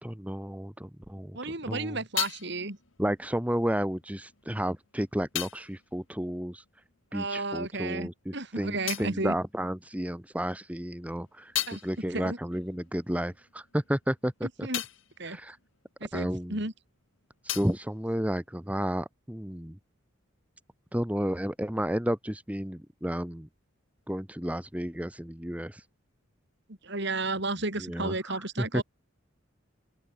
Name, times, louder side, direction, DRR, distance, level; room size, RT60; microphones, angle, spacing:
voice 1, 0.0-2.0 3.0-6.6 7.1-14.7 15.3-15.6 16.1-16.6 17.4-19.8 20.9-23.5 24.1-25.8 27.8-28.8, equal, 5° right, 1.3 m, -32 dB
sound 1, 1.3-7.3 7.6-10.3 10.7-16.7 17.0-19.0, left 13 dB, 65° left, 1.7 m, -40 dB
voice 2, 1.3-2.8 7.1-9.4 11.7-11.8 12.1-12.4 14.6-14.8 15.2-15.4 16.0-16.7 26.7-28.8, right 2 dB, 55° right, 5.0 m, -33 dB
head